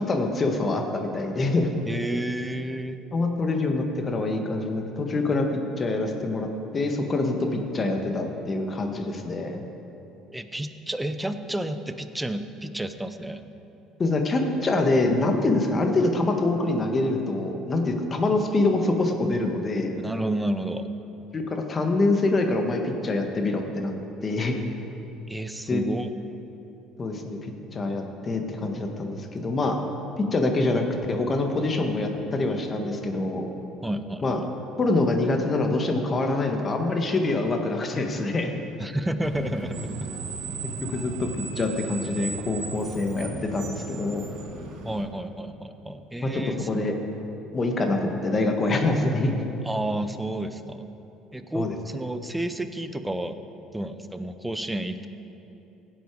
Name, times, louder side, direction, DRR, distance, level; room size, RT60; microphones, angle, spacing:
voice 1, 0.0-1.7 3.1-9.6 14.0-19.9 21.3-23.9 24.2-24.5 25.7-25.8 27.0-29.8 30.2-33.5 34.2-34.4 34.8-38.5 40.8-41.3 41.6-44.3 46.2-46.9 47.5-49.4 51.5-51.8, left 2 dB, 35° left, 4 dB, 1.6 m, -25 dB
voice 2, 1.9-3.0 10.3-13.4 20.0-20.9 25.3-26.1 33.8-34.5 38.8-40.1 44.8-46.7 49.6-50.8 51.3-53.4 53.7-55.1, right 1 dB, 10° right, 10 dB, 0.8 m, -31 dB
Screech, 39.2-45.0, right 4 dB, 60° right, 1.7 m, -36 dB
16.5 x 8.1 x 4.8 m, 3.0 s
hypercardioid pair, 65°, 0 cm